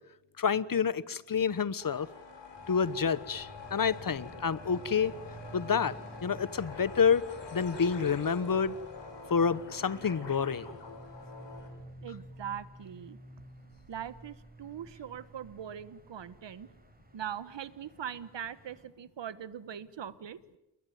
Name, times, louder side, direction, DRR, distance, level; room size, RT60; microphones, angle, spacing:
voice 1, 0.4-2.1 2.7-5.1 5.5-5.9 6.2-7.3 7.5-8.7 9.3-10.7, left 6 dB, 50° left, 18 dB, 1.2 m, -28 dB
sound 1, 1.8-11.7, left 5 dB, 85° left, 7.9 m, -46 dB
sound 2, 2.6-18.8, right 2 dB, 20° right, 6.4 m, -51 dB
voice 2, 12.0-13.2 13.9-16.7 17.1-20.4, right 9 dB, 80° right, 15 dB, 1.4 m, -41 dB
29.5 x 22.0 x 9.4 m, 0.91 s
cardioid pair, 75°, 42 cm